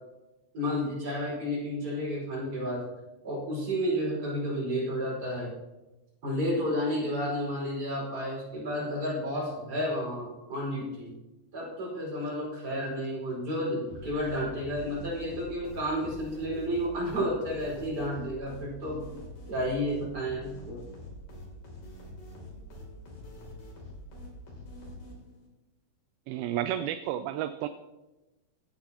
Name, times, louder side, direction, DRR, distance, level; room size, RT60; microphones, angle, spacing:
voice 1, 0.5-2.8 3.2-5.5 6.2-11.1 11.5-19.0 19.5-20.8, equal, 25° right, -5 dB, 5.3 m, -31 dB
sound 1, 13.9-25.5, left 1 dB, 60° left, 4.4 m, -45 dB
voice 2, 26.3-27.7, right 11 dB, 85° right, 9 dB, 2.3 m, -31 dB
16.5 x 11.0 x 2.9 m, 1.0 s
omnidirectional pair, 4.3 m